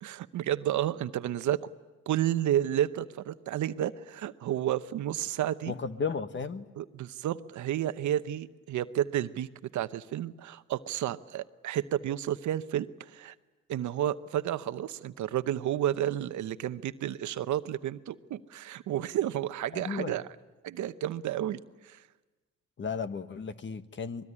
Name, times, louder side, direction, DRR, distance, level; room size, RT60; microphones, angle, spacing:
voice 1, 0.0-1.6 2.1-5.7 6.8-9.5 9.7-13.3 13.7-20.2 20.6-22.0, right 11 dB, 70° right, 13 dB, 0.9 m, -31 dB
voice 2, 5.7-6.7 19.7-20.1 22.8-24.3, left 5 dB, 40° left, 11 dB, 1.4 m, -34 dB
24.5 x 21.5 x 9.9 m, 1.2 s
cardioid pair, 90°, 30 cm